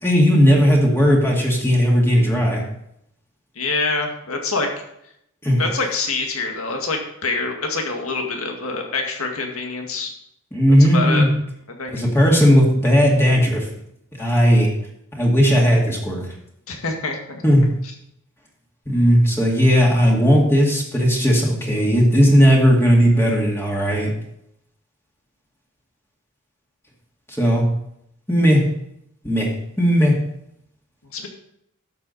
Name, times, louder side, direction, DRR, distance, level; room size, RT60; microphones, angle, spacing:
voice 1, 0.0-2.6 5.4-5.6 10.5-11.3 11.9-13.6 14.2-14.7 15.1-16.3 17.4-17.8 18.9-24.1 27.4-27.7 28.3-28.7 29.2-30.3, equal, 10° left, -2 dB, 2.2 m, -16 dB
voice 2, 3.6-4.7 5.6-10.1 10.8-11.3 11.8-11.9 16.7-17.4 31.1-31.3, left 3 dB, 85° left, 2 dB, 2.0 m, -25 dB
12.0 x 7.7 x 4.2 m, 0.76 s
head